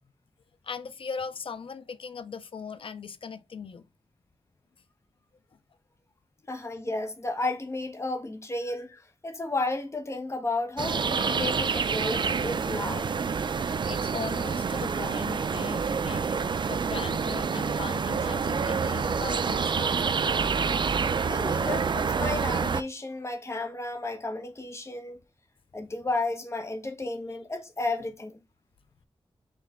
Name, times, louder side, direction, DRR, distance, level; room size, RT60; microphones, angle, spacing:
voice 1, 0.6-3.8 13.9-20.2, left 5 dB, 65° left, 0.4 m, -39 dB
voice 2, 6.5-13.1 16.1-16.2 21.2-25.2 25.7-28.4, left 2 dB, 30° left, 0.9 m, -33 dB
sound 1, 10.8-22.8, right 5 dB, 55° right, 0.4 m, -27 dB
4.5 x 3.2 x 3.6 m
wide cardioid pair, 100°, 10 cm